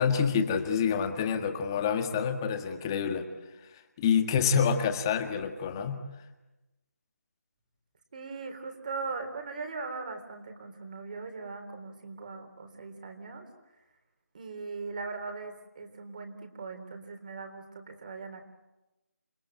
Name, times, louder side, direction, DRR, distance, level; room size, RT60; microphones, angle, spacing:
voice 1, 0.0-3.3 4.0-6.0, left 6 dB, 15° left, 6 dB, 1.7 m, -27 dB
voice 2, 8.1-13.5 14.3-18.4, right 4 dB, 30° right, 7 dB, 3.6 m, -39 dB
28.5 x 20.5 x 9.0 m, 1.0 s
figure-of-eight pair, 170°, 9 cm